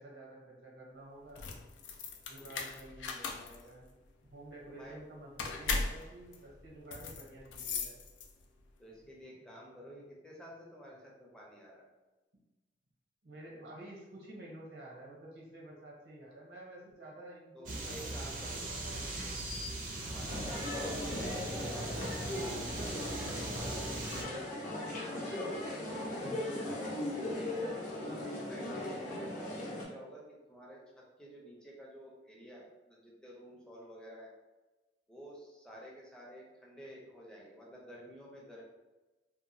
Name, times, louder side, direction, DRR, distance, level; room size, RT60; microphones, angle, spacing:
voice 1, 0.0-1.5 2.3-3.9 4.3-8.0 13.2-19.5 20.1-20.4 28.0-28.4, right 1 dB, 75° right, -3 dB, 0.7 m, -51 dB
sound 1, 1.2-8.6, left 4 dB, 90° left, 0.4 m, -39 dB
voice 2, 4.7-5.0 8.8-11.9 17.5-18.7 20.0-22.1 22.5-24.7 25.0-26.8 28.1-34.3 35.1-38.6, equal, 5° left, -4 dB, 0.5 m, -51 dB
sound 2, 17.7-24.2, right 2 dB, 45° right, 0.4 m, -39 dB
sound 3, 20.3-29.8, left 1 dB, 45° left, 0.6 m, -38 dB
2.8 x 2.2 x 2.5 m, 1.1 s
head